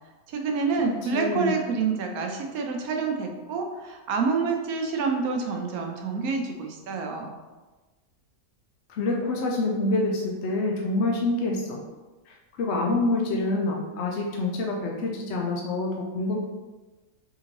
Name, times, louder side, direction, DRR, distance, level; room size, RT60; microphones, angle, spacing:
voice 1, 0.3-7.3, right 4 dB, 80° right, 3 dB, 1.1 m, -27 dB
voice 2, 1.1-1.5 8.9-11.8 12.3-16.4, left 2 dB, 65° left, 0 dB, 0.7 m, -27 dB
3.6 x 3.6 x 3.0 m, 1.2 s
omnidirectional pair, 1.5 m